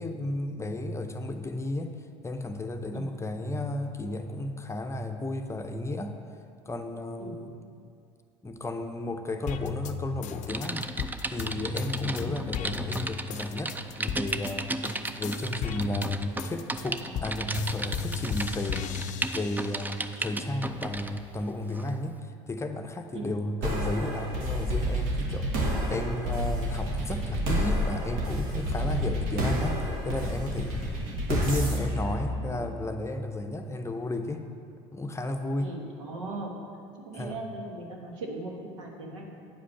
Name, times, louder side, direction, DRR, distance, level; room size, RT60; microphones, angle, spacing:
voice 1, 0.0-2.0 2.2-6.1 6.7-7.6 8.4-10.9 11.3-14.9 15.1-18.9 19.3-30.8 31.3-34.4 34.9-35.7 37.1-37.4, left 1 dB, 20° left, 6 dB, 0.7 m, -33 dB
sound 1, 9.5-14.5 14.8-20.0 20.5-21.5, left 8 dB, 55° left, 0.5 m, -36 dB
Typing, 10.5-21.2 21.7-21.9, right 2 dB, 10° right, 0.4 m, -35 dB
sound 2, 23.6-33.1, equal, 70° right, 1.5 m, -29 dB
voice 2, 35.6-36.5 37.0-39.5, right 2 dB, 90° right, 0 dB, 1.3 m, -39 dB
9.2 x 5.0 x 5.9 m, 2.3 s
hypercardioid pair, 75°, 15 cm